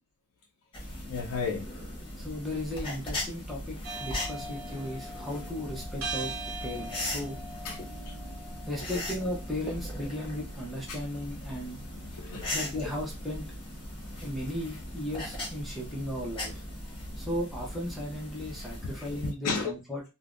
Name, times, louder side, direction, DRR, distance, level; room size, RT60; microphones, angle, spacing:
sound 1, 0.7-19.3, left 1 dB, 25° left, 1.0 m, -39 dB
voice 1, 1.1-1.7 5.3-5.4 6.8-6.9 7.6-8.1 10.9-11.0 12.1-12.9 18.8-19.7, left 5 dB, 90° left, 0.4 m, -35 dB
voice 2, 2.2-6.3 6.6-7.4 8.7-11.8 12.5-13.4 14.2-16.6 17.2-20.0, left 1 dB, ahead, 0.6 m, -36 dB
sound 2, 3.8-16.0, right 2 dB, 75° right, 0.7 m, -44 dB
3.3 x 2.0 x 2.4 m
head